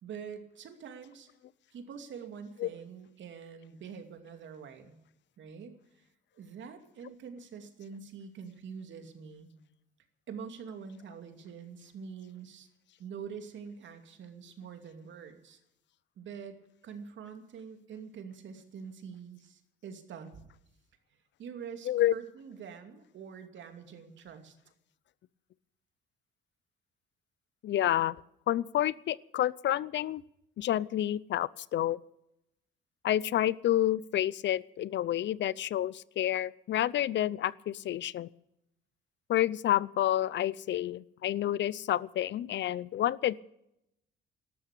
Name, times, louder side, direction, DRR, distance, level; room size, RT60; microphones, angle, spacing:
voice 1, 0.0-1.3 1.7-5.0 5.4-6.0 6.4-9.5 10.3-12.7 13.0-15.6 16.2-16.6 16.8-20.5 21.4-24.5, right 6 dB, 70° right, 6 dB, 2.6 m, -45 dB
voice 2, 27.6-28.2 28.5-30.2 30.6-32.0 33.0-38.3 39.3-43.4, left 12 dB, 65° left, 21 dB, 0.6 m, -29 dB
13.0 x 12.5 x 8.3 m, 0.80 s
cardioid pair, 90°, 20 cm